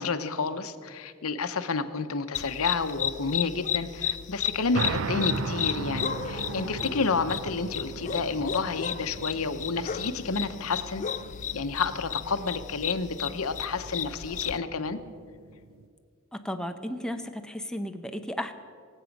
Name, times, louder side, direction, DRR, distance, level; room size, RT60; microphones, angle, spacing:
voice 1, 0.0-11.0 11.5-15.0, left 4 dB, 80° left, 9 dB, 0.8 m, -30 dB
sound 1, 2.3-14.6, left 8 dB, 35° left, 0.4 m, -34 dB
sound 2, 4.7-15.8, right 4 dB, 70° right, 0.6 m, -37 dB
voice 2, 16.3-18.5, equal, 5° left, 7 dB, 0.7 m, -34 dB
24.0 x 8.1 x 5.3 m, 2.1 s
head